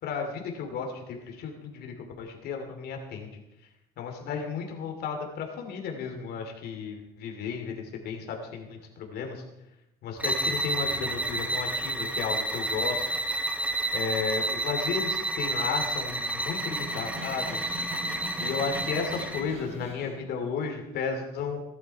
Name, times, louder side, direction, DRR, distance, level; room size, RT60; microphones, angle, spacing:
voice 1, 0.0-3.4 4.0-9.4 10.0-13.0 13.9-17.8 18.4-21.6, left 6 dB, 70° left, 3 dB, 2.8 m, -33 dB
sound 1, 10.2-19.5, right 1 dB, 10° right, 1.1 m, -30 dB
Snare drum, 16.4-20.2, right 1 dB, 40° right, 3.9 m, -41 dB
18.0 x 11.5 x 4.7 m, 0.89 s
cardioid pair, 110°, 17 cm